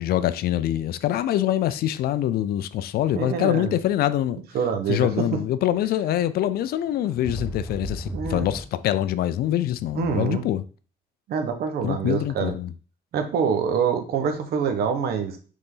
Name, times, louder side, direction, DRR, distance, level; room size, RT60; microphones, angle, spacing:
voice 1, 0.0-4.4 4.9-10.6 11.8-12.7, left 12 dB, 65° left, 0.5 m, -24 dB
voice 2, 3.1-3.7 4.5-5.4 8.1-8.5 9.9-10.4 11.3-12.5 13.1-15.4, right 7 dB, 65° right, 1.2 m, -25 dB
sound 1, 6.3-6.4 6.8-8.7, equal, ahead, 0.8 m, -33 dB
6.3 x 4.0 x 3.8 m
cardioid pair, 110°, 17 cm